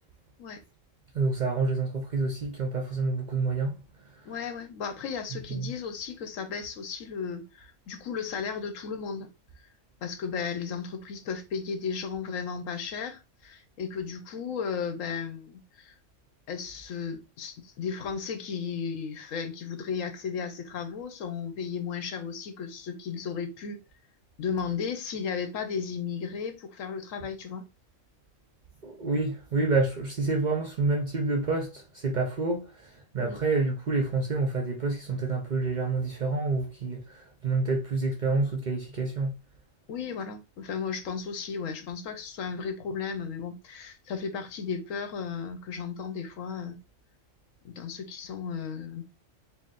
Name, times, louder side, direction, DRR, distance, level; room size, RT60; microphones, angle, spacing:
voice 1, 1.1-3.7 5.5-5.7 28.8-39.3, right 3 dB, 50° right, 0.6 m, -28 dB
voice 2, 4.2-9.3 10.0-15.9 16.5-23.8 24.4-27.6 33.2-33.4 39.9-46.8 47.6-49.0, left 6 dB, 80° left, 1.1 m, -35 dB
4.0 x 2.1 x 3.7 m
omnidirectional pair, 1.4 m